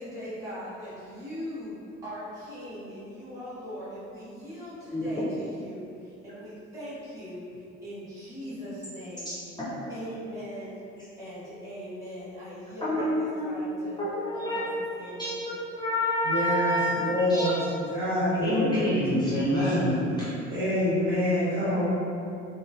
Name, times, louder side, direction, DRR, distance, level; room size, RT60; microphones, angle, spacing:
voice 1, 0.0-1.7 2.0-9.3 9.9-10.8 11.2-14.0 14.3-15.4, equal, 10° right, -11 dB, 0.8 m, -40 dB
voice 2, 9.3-9.7 12.8-13.5 14.0-14.6 15.1-16.9 17.2-17.5 18.4-20.0, left 1 dB, 10° left, -9 dB, 0.4 m, -27 dB
voice 3, 16.2-19.0 20.5-21.9, left 1 dB, 70° right, -14 dB, 1.3 m, -26 dB
3.0 x 2.1 x 2.3 m, 2.6 s
figure-of-eight pair, 60°, 39 cm